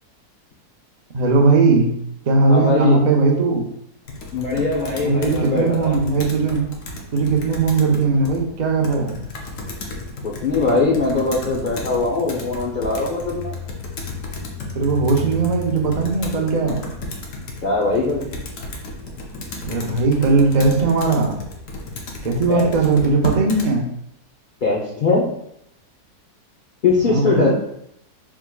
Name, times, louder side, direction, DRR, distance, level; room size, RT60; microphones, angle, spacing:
voice 1, 1.1-1.9 2.2-3.6 5.0-6.7 7.1-9.2 14.7-16.9 19.6-21.4 22.2-23.9 27.0-27.5, right 3 dB, 70° right, -1 dB, 0.4 m, -18 dB
voice 2, 2.5-3.0 4.3-6.0 10.2-13.5 17.6-18.2 22.5-22.7 24.6-25.3 26.8-27.5, left 3 dB, 90° left, -4 dB, 0.4 m, -21 dB
Computer keyboard, 4.0-23.7, left 2 dB, 60° left, 1.0 m, -33 dB
4.5 x 3.6 x 2.3 m, 0.76 s
omnidirectional pair, 1.7 m